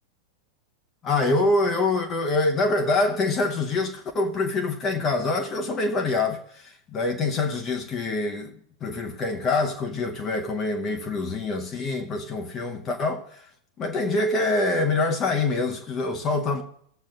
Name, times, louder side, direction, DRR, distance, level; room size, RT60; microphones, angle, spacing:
voice 1, 1.0-13.4 13.8-16.6, left 3 dB, 30° left, 0.8 m, -25 dB
16.0 x 7.4 x 2.5 m
figure-of-eight pair, 90°, 0 cm